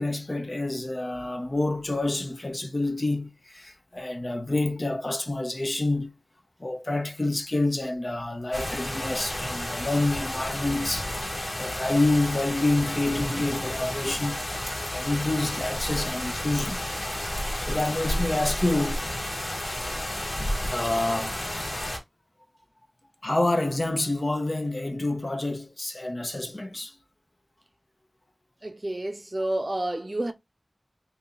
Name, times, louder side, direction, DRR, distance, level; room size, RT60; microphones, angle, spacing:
voice 1, 0.0-6.1 6.6-11.1 11.6-14.4 14.9-16.9 17.2-19.0 20.7-21.4 23.2-26.9, left 2 dB, 45° left, 0.8 m, -28 dB
sound 1, 8.5-22.0, left 1 dB, 60° left, 1.5 m, -31 dB
voice 2, 28.6-30.3, right 1 dB, 40° right, 0.6 m, -29 dB
3.1 x 2.8 x 3.7 m
wide cardioid pair, 50°, 0 cm